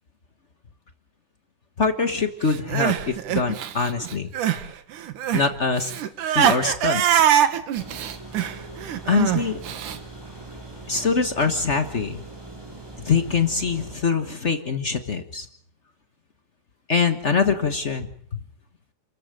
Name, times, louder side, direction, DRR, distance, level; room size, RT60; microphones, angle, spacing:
voice 1, 1.8-4.3 5.3-5.9 6.3-7.2 9.1-9.6 10.9-12.2 13.0-15.5 16.9-18.4, left 5 dB, 70° left, 8 dB, 0.6 m, -24 dB
Crying sobbing, 2.5-4.7 4.9-10.0, right 10 dB, 80° right, 3.0 m, -23 dB
sound 1, 7.7-14.0, right 2 dB, 5° right, 5.0 m, -41 dB
29.0 x 14.5 x 9.1 m, 0.64 s
omnidirectional pair, 3.5 m